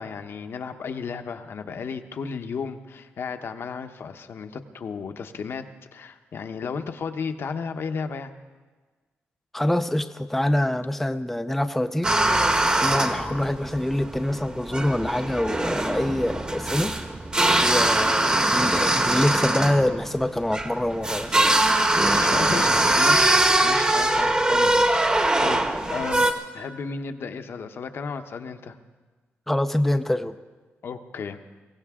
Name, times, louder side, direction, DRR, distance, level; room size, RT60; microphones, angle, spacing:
voice 1, 0.0-8.3 17.7-17.9 18.3-18.5 22.1-25.6 25.9-28.8 30.8-31.4, left 5 dB, 60° left, 7 dB, 1.0 m, -34 dB
voice 2, 9.5-16.9 17.6-21.4 29.5-30.4, left 1 dB, 5° left, 8 dB, 0.5 m, -25 dB
sound 1, 12.0-26.3, right 1 dB, 20° right, 1.2 m, -22 dB
22.5 x 16.5 x 3.7 m, 1.4 s
wide cardioid pair, 120°, 4 cm